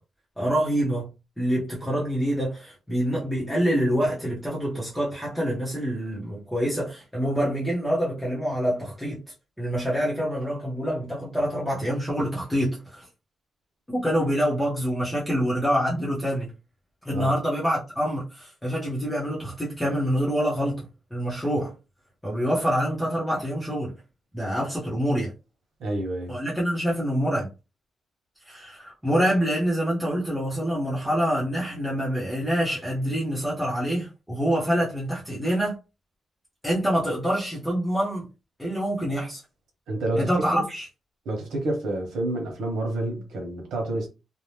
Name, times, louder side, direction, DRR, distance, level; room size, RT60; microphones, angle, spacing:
voice 1, 0.4-9.2 9.6-13.1 13.9-16.5 17.0-21.7 22.2-23.9 24.3-25.3 26.3-27.5 28.5-35.8 36.6-38.2 38.6-39.4 40.2-40.9, equal, 5° left, 0.7 m, -26 dB
voice 2, 25.8-26.4 39.9-40.6 41.2-44.1, right 1 dB, 80° right, 1.1 m, -29 dB
2.7 x 2.1 x 3.2 m
wide cardioid pair, 175°, 0 cm